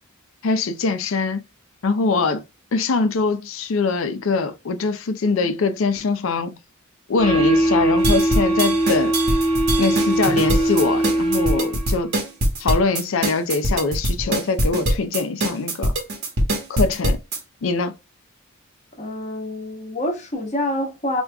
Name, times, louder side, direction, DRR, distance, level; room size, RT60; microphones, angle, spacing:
voice 1, 0.4-1.4 1.8-2.4 2.7-6.5 7.1-9.2 9.8-12.2 12.6-15.9 16.7-17.2 17.6-17.9, left 4 dB, 65° left, 0.4 m, -23 dB
sound 1, 7.2-12.0, right 1 dB, 25° right, 0.7 m, -20 dB
sound 2, 8.0-17.4, right 1 dB, 50° right, 1.1 m, -23 dB
voice 2, 19.0-21.2, left 1 dB, 30° left, 1.2 m, -26 dB
4.9 x 2.4 x 2.2 m
head